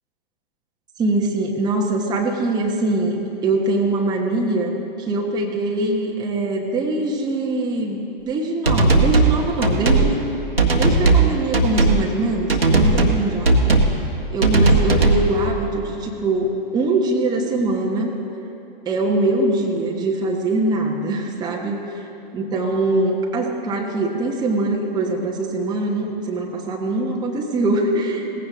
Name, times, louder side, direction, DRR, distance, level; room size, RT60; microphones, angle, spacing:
voice 1, 1.0-8.0 8.3-10.2 10.7-13.5 14.3-18.1 18.8-22.1 22.3-28.4, right 2 dB, 15° right, 0 dB, 1.1 m, -22 dB
sound 1, 8.7-9.3 9.6-10.1 10.6-11.3 11.5-12.0 12.5-13.2 13.5-13.9 14.4-15.2, right 3 dB, 85° right, 1.6 m, -16 dB
17.5 x 15.5 x 3.6 m, 2.9 s
figure-of-eight pair, 110°, 29 cm